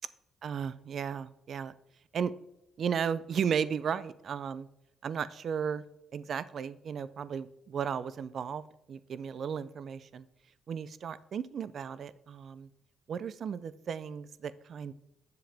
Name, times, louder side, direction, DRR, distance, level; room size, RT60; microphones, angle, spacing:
voice 1, 0.4-1.7 2.1-2.3 2.8-4.7 5.0-5.8 6.1-10.2 10.7-12.7 13.1-14.9, right 7 dB, 55° right, 17 dB, 0.4 m, -35 dB
7.7 x 7.1 x 3.4 m, 0.81 s
cardioid pair, 90°, 0 cm